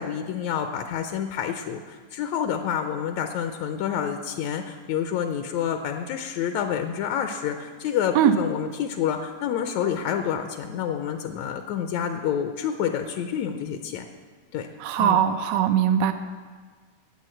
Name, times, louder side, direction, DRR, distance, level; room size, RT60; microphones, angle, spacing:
voice 1, 0.0-14.1 14.5-14.7 15.0-15.2, left 8 dB, 80° left, 6 dB, 1.6 m, -28 dB
voice 2, 14.8-16.1, right 9 dB, 85° right, 8 dB, 1.5 m, -20 dB
9.5 x 8.5 x 8.8 m, 1.5 s
omnidirectional pair, 3.8 m